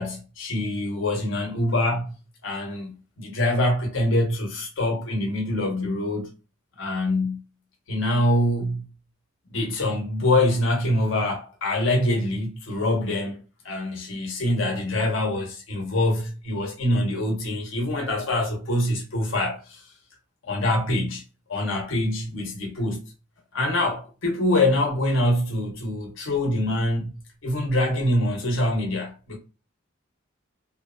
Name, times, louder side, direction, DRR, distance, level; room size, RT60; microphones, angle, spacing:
voice 1, 0.0-2.1 2.4-6.3 6.8-7.4 7.9-8.9 9.5-13.4 13.6-19.8 20.4-21.2 21.5-23.0 23.5-27.1 27.4-29.4, left 1 dB, 70° left, 0.8 m, -24 dB
2.8 x 2.1 x 2.3 m
head